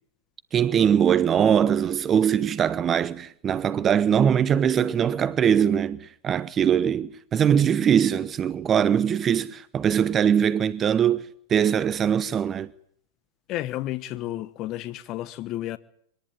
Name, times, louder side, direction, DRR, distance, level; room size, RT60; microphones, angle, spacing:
voice 1, 0.5-12.7, right 8 dB, 25° right, 0.9 m, -22 dB
voice 2, 13.5-15.8, left 14 dB, 40° left, 1.1 m, -31 dB
24.0 x 19.0 x 9.6 m
hypercardioid pair, 105°, 0 cm